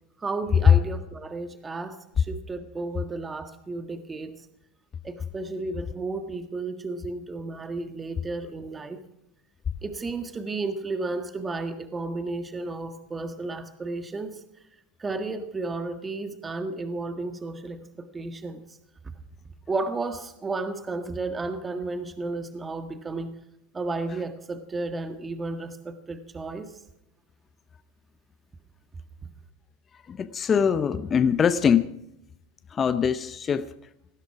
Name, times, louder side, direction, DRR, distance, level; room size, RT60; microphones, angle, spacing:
voice 1, 0.2-4.3 5.0-9.0 9.8-14.4 15.0-18.6 19.0-19.1 19.7-23.3 23.7-26.7, right 3 dB, 20° right, 1.7 m, -33 dB
voice 2, 30.1-31.9 32.7-33.7, left 7 dB, 30° left, 0.8 m, -23 dB
19.5 x 15.0 x 4.8 m
hypercardioid pair, 95°, 0 cm